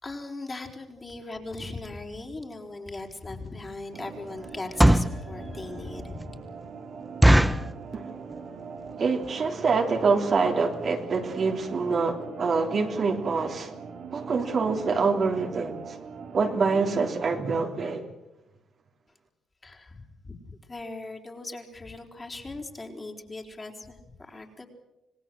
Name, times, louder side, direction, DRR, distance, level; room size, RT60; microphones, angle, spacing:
voice 1, 0.0-6.4 19.6-24.7, left 2 dB, 25° left, 4.3 m, -39 dB
sound 1, 3.0-3.1 3.6-3.8 4.5-5.2 5.8-5.9 6.2-6.3 6.6-6.7 7.2-7.7 8.3-8.6 8.9-9.0 9.2-9.5 10.0-10.1 10.3-10.5 10.8-10.9 11.1-11.2, right 1 dB, 5° right, 1.2 m, -19 dB
sound 2, 3.9-17.0, right 5 dB, 65° right, 3.3 m, -42 dB
voice 2, 9.0-13.7 14.1-16.0 16.3-18.0, right 4 dB, 50° right, 3.2 m, -25 dB
26.5 x 18.5 x 7.6 m
cardioid pair, 90°, 0 cm